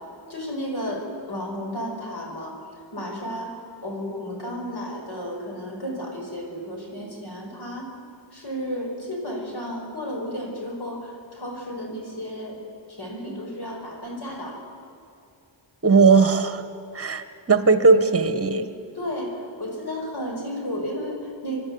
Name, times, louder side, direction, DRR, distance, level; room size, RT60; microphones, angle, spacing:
voice 1, 0.0-2.6 2.9-7.9 8.3-12.6 12.9-14.6 19.0-21.7, equal, 60° left, 0 dB, 5.4 m, -33 dB
voice 2, 15.8-16.6 16.9-18.7, right 4 dB, 30° right, 10 dB, 1.5 m, -18 dB
27.0 x 11.5 x 9.6 m, 2.5 s
wide cardioid pair, 95°, 45 cm